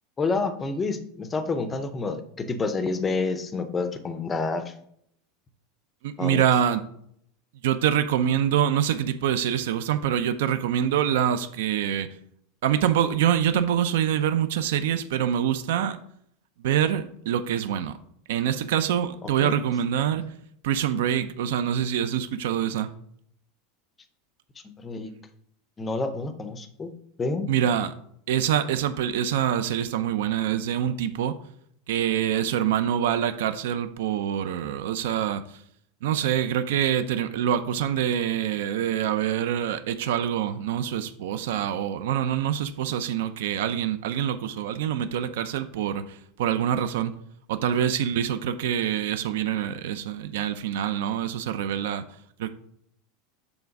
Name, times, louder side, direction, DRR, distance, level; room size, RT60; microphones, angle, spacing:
voice 1, 0.2-4.7 6.2-6.4 19.4-19.6 24.6-25.1 25.8-26.9 27.2-27.5, left 3 dB, 15° left, 9 dB, 0.5 m, -28 dB
voice 2, 6.0-6.8 7.6-12.1 12.6-16.0 16.6-17.9 18.3-20.2 20.6-22.9 27.5-27.9 28.3-31.4 31.9-35.4 36.0-47.1 47.5-52.0 52.4-52.5, right 10 dB, 70° right, 10 dB, 0.4 m, -25 dB
7.0 x 3.4 x 5.2 m, 0.69 s
supercardioid pair, 180°, 0 cm